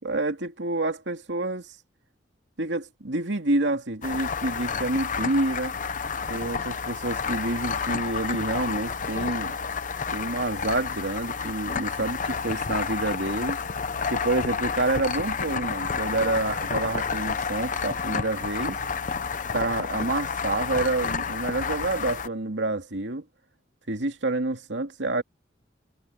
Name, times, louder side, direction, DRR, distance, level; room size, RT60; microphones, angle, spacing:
voice 1, 0.0-1.7 2.6-5.7 6.3-9.6 10.1-13.6 14.1-18.8 19.5-23.2 23.9-25.2, right 2 dB, 90° right, 2.5 m, -28 dB
sound 1, 4.0-22.3, left 5 dB, 45° left, 0.9 m, -30 dB
head